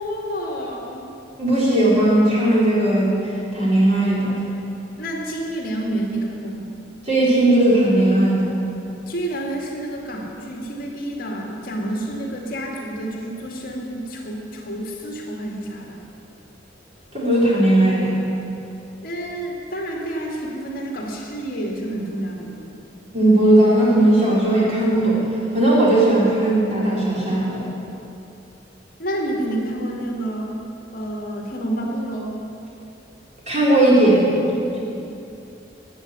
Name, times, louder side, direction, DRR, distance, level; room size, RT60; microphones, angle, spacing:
voice 1, 0.0-1.2 5.0-6.7 9.1-16.0 19.0-22.8 29.0-30.5 30.9-32.3, right 1 dB, 50° left, -1 dB, 2.2 m, -29 dB
voice 2, 1.4-4.3 7.0-8.5 17.1-18.2 23.1-25.2 25.5-27.6 33.5-34.8, right 1 dB, 35° right, -6 dB, 4.3 m, -17 dB
13.5 x 8.0 x 9.8 m, 2.7 s
head